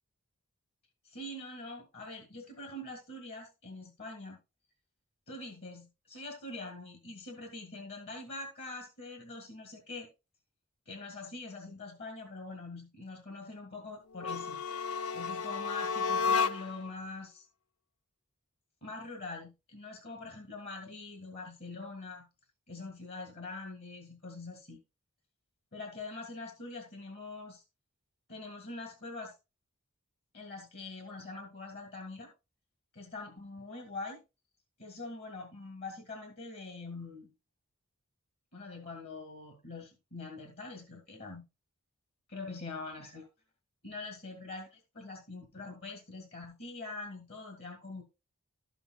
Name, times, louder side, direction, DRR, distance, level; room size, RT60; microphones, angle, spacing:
voice 1, 1.0-4.4 5.3-10.1 10.9-14.6 15.1-17.5 18.8-22.3 22.7-24.8 25.7-27.6 28.3-29.3 30.3-32.3 32.9-34.2 34.8-37.3 38.5-41.4 42.3-43.3 43.8-48.0, left 3 dB, 50° left, 3 dB, 1.7 m, -44 dB
sound 1, 14.1-16.9, left 5 dB, 80° left, 0.4 m, -32 dB
12.0 x 7.0 x 2.3 m, 0.26 s
head